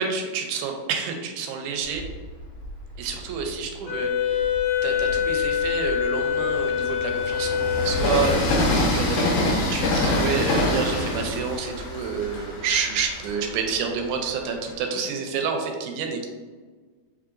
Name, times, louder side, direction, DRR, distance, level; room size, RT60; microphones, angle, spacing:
voice 1, 0.0-2.0 3.0-4.5 4.8-8.4 8.9-16.3, right 5 dB, 85° right, 3 dB, 2.0 m, -28 dB
Train, 1.9-3.5 4.2-14.8, left 1 dB, 75° left, 1.6 m, -27 dB
Wind instrument woodwind instrument, 3.9-8.4, left 9 dB, 50° left, 1.2 m, -25 dB
4.6 x 3.1 x 2.5 m, 1.4 s
omnidirectional pair, 3.5 m